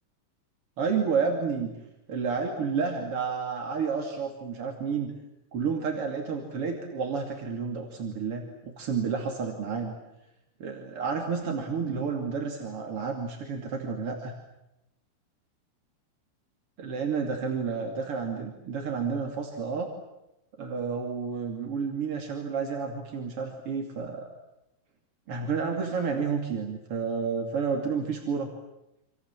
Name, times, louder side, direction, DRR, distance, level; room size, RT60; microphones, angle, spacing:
voice 1, 0.8-1.7 2.1-5.1 5.5-9.9 10.6-14.3 16.8-19.9 20.6-24.3 25.3-28.5, right 5 dB, 35° right, 2 dB, 2.6 m, -30 dB
28.0 x 27.5 x 7.5 m, 0.90 s
omnidirectional pair, 5.8 m